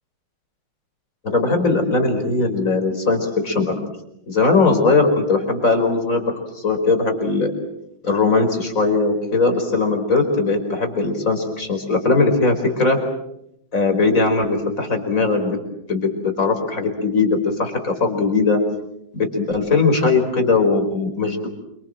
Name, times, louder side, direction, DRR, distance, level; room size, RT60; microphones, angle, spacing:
voice 1, 1.2-3.8 4.3-7.5 8.0-13.0 13.7-15.6 15.9-18.6 19.1-21.5, left 3 dB, 45° left, 5 dB, 5.2 m, -19 dB
28.5 x 26.0 x 7.8 m, 0.80 s
omnidirectional pair, 2.0 m